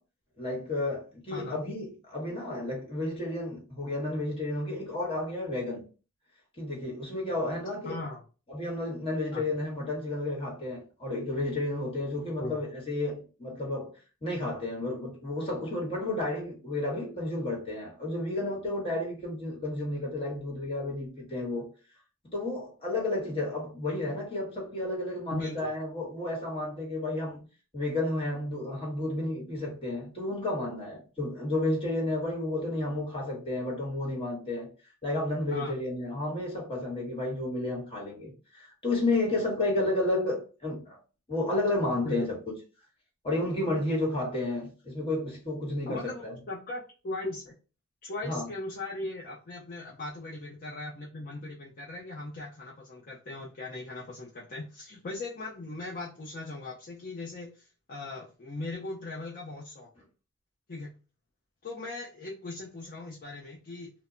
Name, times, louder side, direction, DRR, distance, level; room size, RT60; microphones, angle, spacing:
voice 1, 0.4-5.8 6.6-8.0 8.5-13.9 14.2-21.7 22.3-27.4 27.7-34.7 35.0-41.0 41.3-42.3 43.2-46.3 48.2-48.5, left 2 dB, 25° left, 1.1 m, -31 dB
voice 2, 1.3-1.6 7.8-8.2 9.3-9.4 12.4-12.6 25.3-25.7 35.5-35.8 42.0-42.3 45.9-47.5 48.0-59.9 60.7-60.9 61.6-63.9, left 2 dB, 45° left, 0.5 m, -39 dB
2.1 x 2.0 x 3.6 m
head